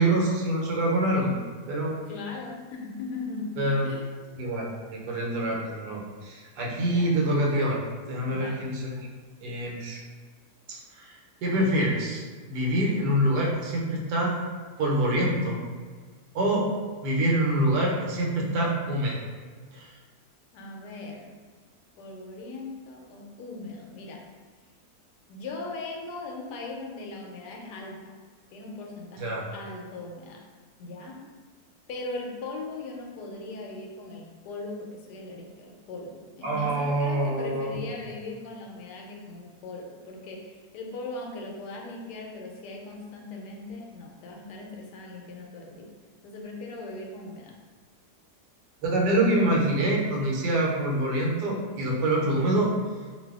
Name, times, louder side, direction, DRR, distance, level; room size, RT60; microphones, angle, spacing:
voice 1, 0.0-1.4 1.7-2.0 3.6-3.9 4.4-7.8 8.1-9.1 9.4-10.0 10.7-14.4 14.8-15.6 16.3-19.2 19.7-19.9 29.2-29.5 36.4-37.7 48.8-52.8, right 1 dB, 85° right, -2 dB, 1.3 m, -26 dB
voice 2, 2.1-3.5 3.8-4.1 6.8-7.1 8.3-8.7 20.5-21.3 22.0-24.2 25.3-28.1 28.5-30.4 30.8-31.2 31.9-45.9 46.2-47.6, left 3 dB, 85° left, 0 dB, 1.2 m, -39 dB
2.6 x 2.6 x 3.4 m, 1.5 s
omnidirectional pair, 1.7 m